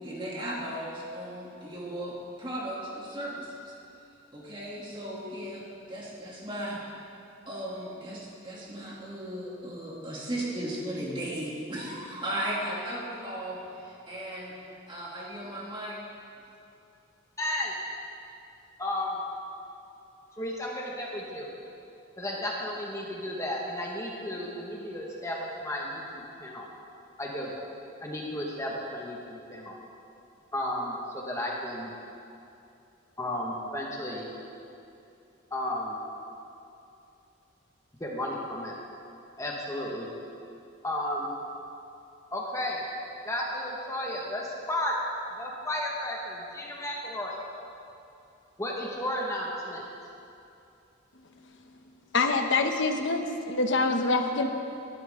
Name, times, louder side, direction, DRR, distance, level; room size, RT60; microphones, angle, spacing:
voice 1, 0.0-3.7 4.3-6.8 7.5-14.6 14.9-16.0, right 1 dB, 25° right, -5 dB, 2.9 m, -36 dB
voice 2, 17.4-17.7 18.8-19.2 20.4-21.5 22.2-26.6 27.2-27.5 28.0-29.7 30.5-31.9 33.2-34.3 35.5-36.0 38.0-38.7 39.4-40.1 40.8-41.3 42.3-42.8 43.2-44.9 45.4-47.4 48.6-49.9, left 1 dB, 15° left, -3 dB, 1.7 m, -33 dB
voice 3, 52.1-54.5, left 3 dB, 60° left, 4 dB, 1.1 m, -25 dB
19.5 x 12.0 x 3.8 m, 2.7 s
head